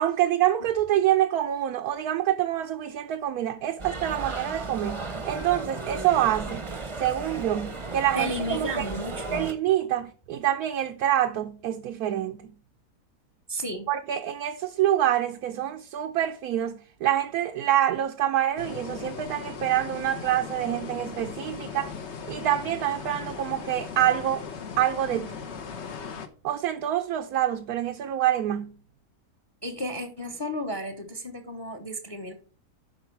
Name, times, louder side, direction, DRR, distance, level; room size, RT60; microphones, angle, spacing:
voice 1, 0.0-5.0 5.2-6.6 7.0-8.9 9.3-12.5 13.9-21.9 22.3-24.4 24.8-25.3 26.4-28.7, right 12 dB, 75° right, 1.1 m, -26 dB
sound 1, 3.8-9.5, right 3 dB, 25° right, 0.8 m, -35 dB
voice 2, 8.1-9.5 13.5-13.9 29.6-32.3, equal, 20° left, 0.9 m, -33 dB
sound 2, 18.6-26.3, left 6 dB, 50° left, 1.1 m, -38 dB
11.5 x 4.6 x 4.5 m
omnidirectional pair, 1.7 m